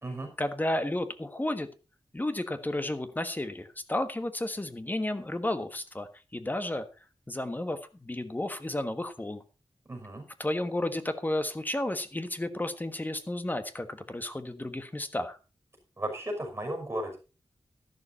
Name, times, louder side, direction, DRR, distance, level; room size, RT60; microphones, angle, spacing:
voice 1, 0.4-1.7 2.1-6.9 7.3-9.4 10.4-15.4, left 1 dB, 20° left, 10 dB, 1.4 m, -32 dB
voice 2, 9.9-10.2 16.0-17.2, right 1 dB, 20° right, 1 dB, 5.2 m, -35 dB
13.0 x 11.5 x 4.2 m, 0.32 s
wide cardioid pair, 125°, 10 cm